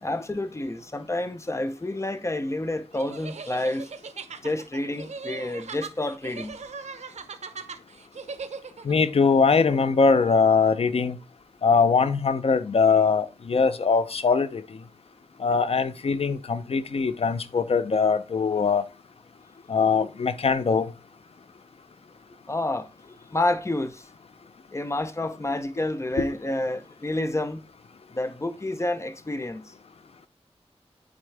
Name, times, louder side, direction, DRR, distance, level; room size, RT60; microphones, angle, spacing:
voice 1, 0.0-3.9 4.4-6.6 22.5-24.0 24.7-27.6 28.1-29.6, left 1 dB, 25° left, 0.7 m, -29 dB
sound 1, 2.9-8.9, right 5 dB, 90° right, 0.6 m, -39 dB
voice 2, 8.8-11.2 11.6-14.6 15.4-18.8 19.7-20.9 26.2-26.3, left 5 dB, 60° left, 0.6 m, -22 dB
9.0 x 3.8 x 3.3 m
wide cardioid pair, 95°, 11 cm